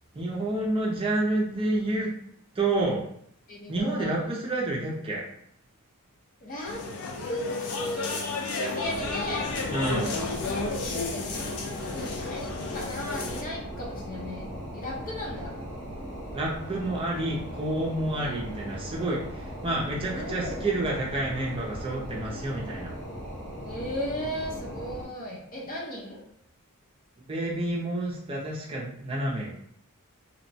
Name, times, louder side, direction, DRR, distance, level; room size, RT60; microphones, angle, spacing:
voice 1, 0.1-2.1 2.5-3.0 3.7-5.3 9.7-10.2 16.3-22.9 27.3-29.5, right 2 dB, 25° right, -4 dB, 0.5 m, -29 dB
voice 2, 3.5-4.3 6.4-6.9 7.2-8.2 8.5-9.5 10.0-15.5 18.2-18.4 20.0-20.7 23.6-26.2, left 1 dB, 40° left, -3 dB, 0.7 m, -36 dB
sound 1, 6.7-13.4, left 3 dB, 80° left, 0.5 m, -32 dB
sound 2, 8.8-25.0, equal, 55° left, 1.1 m, -38 dB
2.9 x 2.1 x 2.7 m, 0.68 s
head